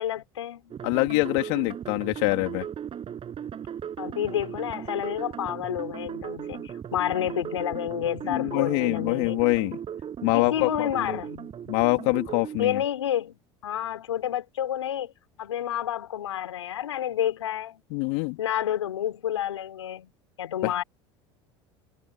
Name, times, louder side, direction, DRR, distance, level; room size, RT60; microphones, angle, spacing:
voice 1, 0.0-0.7 4.0-9.4 10.3-11.5 12.6-15.1 15.4-17.8 18.4-20.1 20.4-20.8, left 11 dB, 90° left, 4.6 m, -29 dB
sound 1, 0.7-12.7, right 9 dB, 40° right, 7.8 m, -37 dB
voice 2, 0.8-2.7 8.2-9.8 10.2-11.2 11.7-12.8 17.9-18.4 20.6-20.7, left 29 dB, 70° left, 3.4 m, -25 dB
hypercardioid pair, 80°, 15 cm